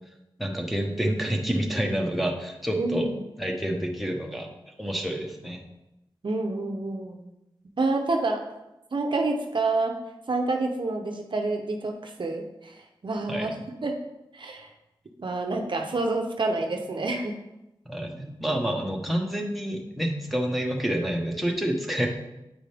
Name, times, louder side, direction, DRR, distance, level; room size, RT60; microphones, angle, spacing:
voice 1, 0.4-3.1 3.4-4.5 4.8-5.6 13.3-13.5 17.8-22.1, right 1 dB, ahead, 0 dB, 1.1 m, -28 dB
voice 2, 2.8-3.2 6.2-7.2 7.8-8.4 8.9-10.0 10.3-13.5 13.8-13.9 14.3-14.7 15.2-17.3, right 2 dB, 60° right, 3 dB, 0.7 m, -28 dB
8.5 x 4.9 x 3.4 m, 0.93 s
wide cardioid pair, 80°, 9 cm